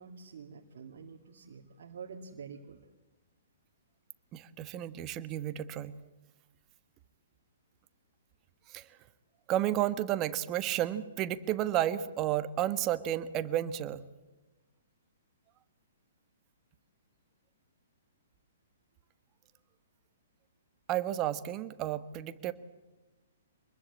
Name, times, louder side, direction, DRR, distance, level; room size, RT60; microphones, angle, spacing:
voice 1, 0.0-2.8, right 5 dB, 60° right, 0 dB, 2.3 m, -47 dB
voice 2, 4.3-5.9 8.7-8.9 9.5-14.0 20.9-22.5, right 12 dB, 30° right, 12 dB, 1.4 m, -32 dB
25.5 x 21.0 x 8.6 m, 1.1 s
figure-of-eight pair, 125°, 0 cm